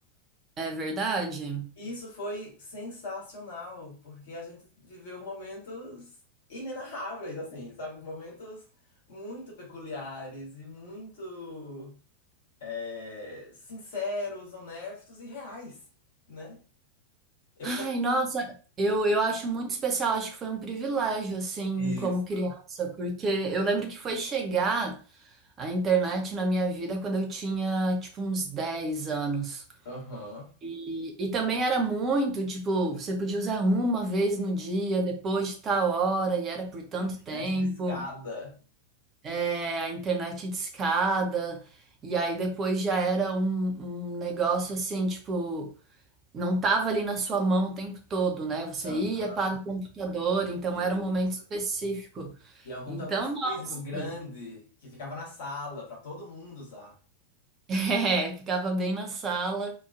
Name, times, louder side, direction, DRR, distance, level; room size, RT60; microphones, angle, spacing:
voice 1, 0.6-1.7 17.6-25.0 25.6-29.6 30.6-38.0 39.2-41.6 42.0-45.7 46.3-52.3 52.9-53.6 53.9-54.1 57.7-59.7, right 3 dB, 25° right, 0.7 m, -28 dB
voice 2, 1.8-6.1 6.5-8.7 9.1-12.0 12.6-15.8 16.3-16.6 17.6-18.2 21.8-22.5 29.8-30.5 37.0-38.6 48.8-49.6 50.7-51.1 52.6-57.0, left 2 dB, 55° left, 1.2 m, -39 dB
2.9 x 2.3 x 2.4 m
figure-of-eight pair, 90°, 0 cm